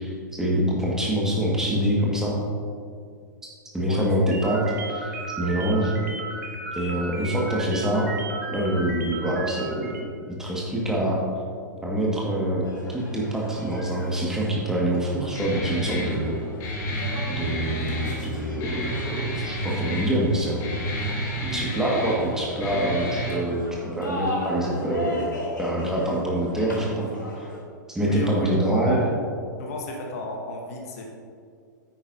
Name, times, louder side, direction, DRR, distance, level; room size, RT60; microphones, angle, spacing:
voice 1, 0.0-2.4 3.7-5.9 6.7-8.1 8.5-9.9 10.3-11.2 11.8-12.6 12.9-16.4 17.3-20.7 21.4-25.3 25.6-27.1 27.4-27.5 27.9-29.0, right 1 dB, 5° right, -4 dB, 1.8 m, -25 dB
sound 1, 4.3-10.0, right 3 dB, 60° right, 1.6 m, -35 dB
sound 2, 12.6-27.6, left 1 dB, 80° left, 2.1 m, -38 dB
Guitar, 15.3-23.3, right 1 dB, 30° left, 2.1 m, -30 dB
voice 2, 28.0-29.2 29.6-31.1, left 1 dB, 50° left, 1 dB, 1.1 m, -33 dB
9.9 x 8.9 x 2.7 m, 2.2 s
figure-of-eight pair, 105°, 10 cm